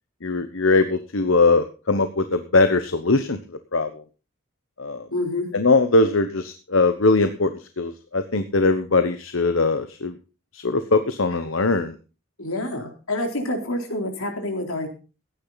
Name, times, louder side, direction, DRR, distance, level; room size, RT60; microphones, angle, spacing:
voice 1, 0.2-3.4 3.7-4.0 4.8-5.1 5.5-10.1 10.5-11.9, left 3 dB, 70° left, 9 dB, 1.1 m, -21 dB
voice 2, 5.1-5.5 12.4-14.9, left 1 dB, 85° left, 4 dB, 3.8 m, -27 dB
16.0 x 10.5 x 4.1 m, 0.34 s
head